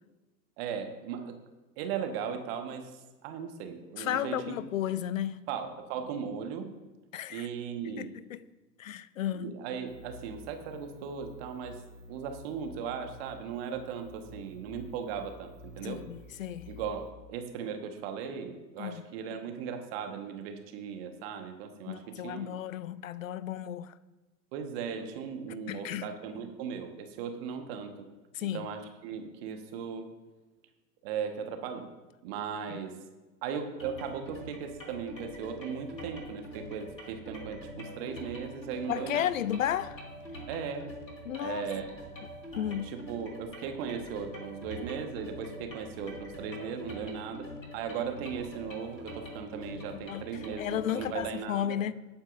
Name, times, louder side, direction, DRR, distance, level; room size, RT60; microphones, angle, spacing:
voice 1, 0.6-1.4 1.8-4.6 5.5-6.7 7.3-8.1 9.3-11.8 12.1-16.0 16.7-22.6 24.5-28.1 28.4-30.1 31.0-31.9 32.2-33.0 33.4-39.3 40.5-40.9 41.4-41.9 42.6-47.5 47.7-51.8, right 7 dB, 35° right, 1.4 m, -37 dB
voice 2, 4.0-5.4 7.1-7.5 7.8-8.4 8.8-9.5 15.8-16.7 18.8-19.0 21.9-23.9 25.7-26.1 28.3-28.7 32.7-32.8 38.9-40.0 41.3-41.7 42.6-42.9 49.9-50.2 50.6-51.9, left 10 dB, 55° left, 0.6 m, -33 dB
sound 1, 9.8-17.1, left 1 dB, 90° right, 3.0 m, -50 dB
sound 2, 33.8-51.3, equal, 90° left, 2.8 m, -45 dB
18.5 x 8.8 x 2.6 m
figure-of-eight pair, 105°, 50 cm